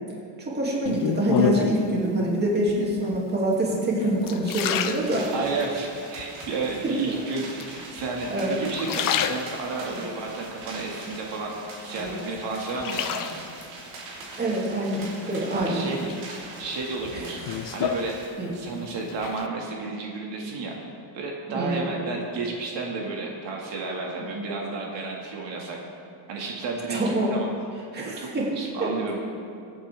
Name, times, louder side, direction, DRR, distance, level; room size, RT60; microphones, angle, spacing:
voice 1, 0.4-5.2 6.8-6.9 8.3-8.6 9.9-10.0 12.0-12.2 14.4-16.0 17.1-17.2 18.4-18.5 21.5-21.8 24.3-24.5 26.9-27.3 27.9-28.5 28.8-28.9, right 1 dB, 20° right, -4 dB, 2.3 m, -26 dB
sound 1, 0.9-1.9 2.7-3.2 3.7-5.7 6.2-6.8 7.6-8.3 8.6-9.9 10.4-11.6 12.0-13.7 15.0-15.6 16.1-18.7 19.0-19.5, left 8 dB, 45° left, 0.6 m, -30 dB
sound 2, 4.7-18.3, right 3 dB, 85° right, 3.4 m, -42 dB
voice 2, 5.3-11.5 11.8-13.4 15.5-16.0 16.6-17.4 17.7-18.2 18.5-20.8 21.1-25.8 26.3-27.5 28.0-29.2, right 3 dB, 65° right, -1 dB, 1.9 m, -32 dB
23.5 x 8.9 x 3.4 m, 2.5 s
cardioid pair, 155°, 47 cm